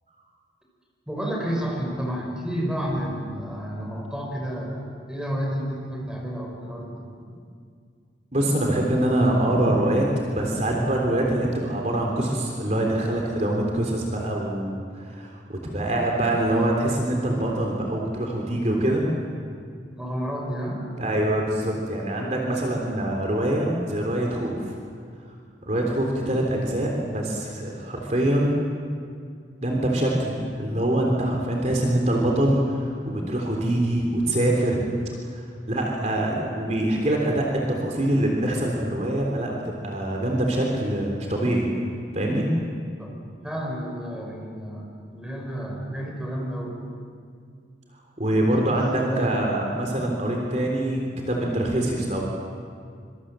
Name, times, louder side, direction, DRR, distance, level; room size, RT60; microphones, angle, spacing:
voice 1, 1.1-7.1 19.9-20.8 35.7-36.1 43.0-43.1 43.4-46.8 48.6-49.3, equal, 5° right, -1 dB, 5.3 m, -31 dB
voice 2, 8.3-19.1 21.0-24.7 25.7-28.6 29.6-34.9 35.3-41.7 42.1-42.5 48.2-52.2, right 1 dB, 40° right, 0 dB, 3.6 m, -24 dB
26.0 x 26.0 x 7.7 m, 2.2 s
head